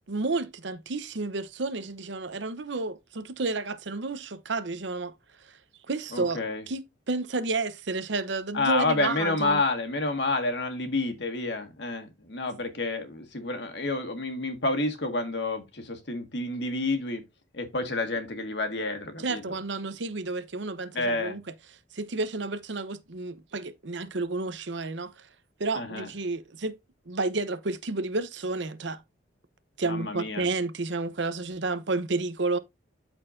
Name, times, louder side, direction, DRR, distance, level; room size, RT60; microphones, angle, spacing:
voice 1, 0.1-5.1 5.5-5.6 5.9-9.6 19.2-21.4 21.9-25.3 25.6-26.8 27.1-29.0 29.8-32.6, right 3 dB, 70° right, 0.8 m, -31 dB
voice 2, 6.1-6.6 8.5-17.2 17.5-19.4 20.9-21.4 25.7-26.1 29.8-30.5, left 2 dB, 65° left, 1.7 m, -29 dB
13.0 x 4.4 x 2.6 m
head